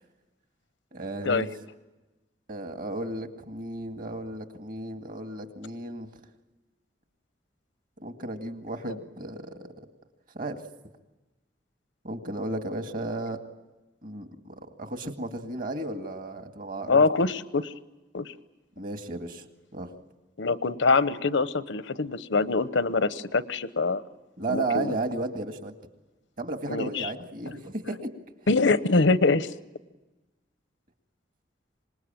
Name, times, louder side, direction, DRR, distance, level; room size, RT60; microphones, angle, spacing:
voice 1, 0.9-1.5 2.5-6.1 8.0-9.5 10.3-10.6 12.0-13.4 14.0-17.1 18.8-19.5 19.7-19.9 24.4-25.7 26.4-28.1, right 2 dB, 50° right, 6 dB, 2.1 m, -34 dB
voice 2, 16.9-17.7 18.1-18.3 20.4-24.0 24.5-25.0 26.7-27.1 28.5-29.5, left 3 dB, 85° left, 14 dB, 0.9 m, -24 dB
26.0 x 20.5 x 9.0 m, 1.1 s
head